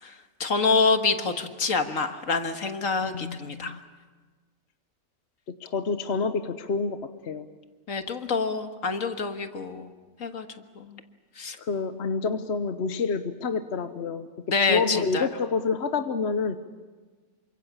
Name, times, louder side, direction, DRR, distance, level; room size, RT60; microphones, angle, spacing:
voice 1, 0.0-3.8 7.9-9.9 10.2-10.5 10.8-11.0 11.4-11.6 14.5-15.3, left 4 dB, 70° left, 7 dB, 2.0 m, -27 dB
voice 2, 3.0-3.8 5.5-7.5 11.6-14.3 14.7-16.6, left 4 dB, 55° left, 9 dB, 1.2 m, -28 dB
28.0 x 25.0 x 7.3 m, 1.4 s
omnidirectional pair, 1.4 m